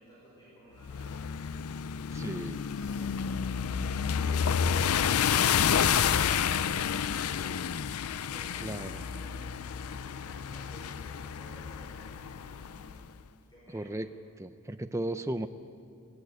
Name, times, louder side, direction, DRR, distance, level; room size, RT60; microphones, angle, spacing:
voice 1, 0.0-1.4 8.2-13.1 13.5-14.0, equal, 20° left, -7 dB, 5.1 m, -54 dB
sound 1, 0.8-13.0, left 7 dB, 85° left, 0.5 m, -30 dB
voice 2, 2.1-2.6 8.6-9.0 13.7-14.1 14.4-15.5, right 1 dB, 15° right, 9 dB, 0.5 m, -35 dB
19.5 x 14.5 x 9.4 m, 2.5 s
head